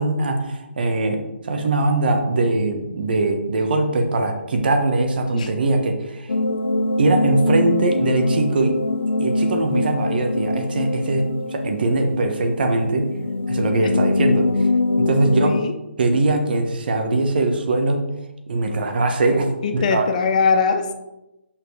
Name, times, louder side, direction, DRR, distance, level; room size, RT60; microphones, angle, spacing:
voice 1, 0.0-6.3 7.0-8.7 9.2-13.2 13.5-14.5 15.0-15.6 16.0-18.1 18.5-20.0, right 2 dB, 50° right, 1.2 m, -21 dB
sound 1, 6.3-15.6, left 2 dB, 90° left, 0.5 m, -23 dB
voice 2, 15.4-15.8 19.6-20.9, left 5 dB, 40° left, 0.6 m, -21 dB
5.8 x 4.5 x 4.9 m
hypercardioid pair, 155°, 6 cm